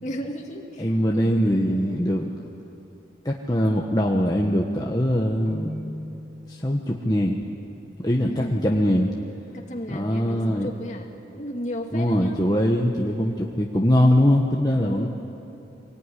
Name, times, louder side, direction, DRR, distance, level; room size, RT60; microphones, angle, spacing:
voice 1, 0.0-1.8 8.2-8.6 9.5-12.4 14.8-15.1, equal, 40° left, 2 dB, 2.3 m, -35 dB
voice 2, 0.8-2.3 3.2-5.7 6.5-7.4 8.0-9.1 9.9-10.7 11.9-15.1, equal, 20° left, -1 dB, 1.3 m, -22 dB
Keyboard (musical), 5.5-7.3, equal, 50° right, 4.3 m, -38 dB
24.5 x 19.5 x 10.0 m, 2.9 s
head